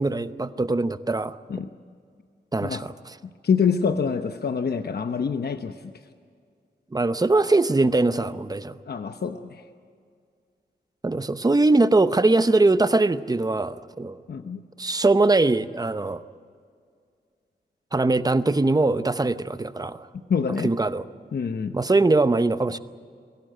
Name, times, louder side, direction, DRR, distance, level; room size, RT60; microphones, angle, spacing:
voice 1, 0.0-1.4 2.5-3.2 6.9-8.8 11.0-14.2 14.8-16.2 17.9-20.0 20.5-21.0 21.7-22.8, right 2 dB, 20° right, 12 dB, 0.7 m, -21 dB
voice 2, 3.4-5.7 8.9-9.6 14.3-14.6 20.3-20.7 21.3-21.7, left 6 dB, 65° left, 8 dB, 0.9 m, -25 dB
22.0 x 17.5 x 9.0 m, 2.1 s
wide cardioid pair, 110°, 18 cm